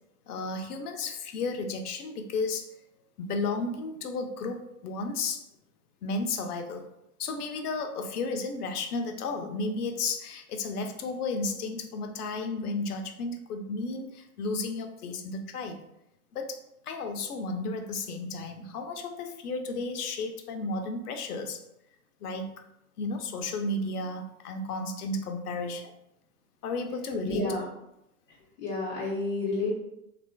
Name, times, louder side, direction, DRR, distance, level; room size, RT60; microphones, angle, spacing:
voice 1, 0.3-2.7 3.2-5.4 6.0-6.9 7.2-15.8 16.3-21.6 22.2-22.5 23.0-25.9 26.6-27.5, left 3 dB, 80° left, 6 dB, 0.6 m, -33 dB
voice 2, 27.3-27.6 28.6-29.8, left 2 dB, 20° left, -9 dB, 0.4 m, -30 dB
2.9 x 2.4 x 2.2 m, 0.83 s
hypercardioid pair, 120°, 45 cm